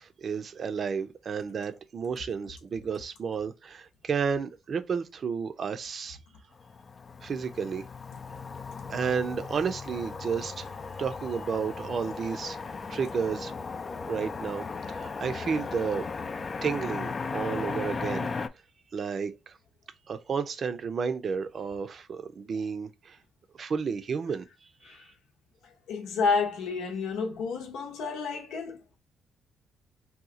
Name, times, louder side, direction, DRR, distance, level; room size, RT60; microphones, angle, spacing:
voice 1, 0.0-6.2 7.2-7.8 8.9-10.7 11.0-12.6 12.9-13.5 14.1-16.0 16.6-18.3 18.9-19.6 20.1-23.2 23.5-24.5 24.9-25.0, right 6 dB, 50° right, 0.5 m, -32 dB
Motor vehicle (road), 6.6-18.5, left 4 dB, 40° left, 0.3 m, -36 dB
voice 2, 25.9-29.0, left 5 dB, 80° left, 0.9 m, -30 dB
2.8 x 2.3 x 3.7 m
cardioid pair, 85°, 0 cm